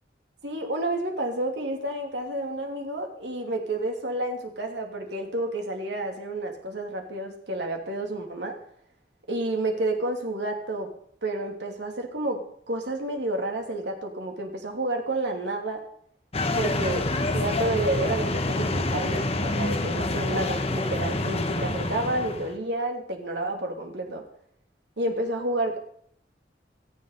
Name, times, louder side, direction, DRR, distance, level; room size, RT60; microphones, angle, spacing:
voice 1, 0.4-8.6 9.3-10.9 11.2-15.8 16.5-24.2 25.0-25.8, right 2 dB, 80° right, 3 dB, 3.0 m, -30 dB
sound 1, 16.3-22.5, left 2 dB, 35° left, 1.3 m, -27 dB
17.5 x 14.5 x 4.2 m, 0.64 s
head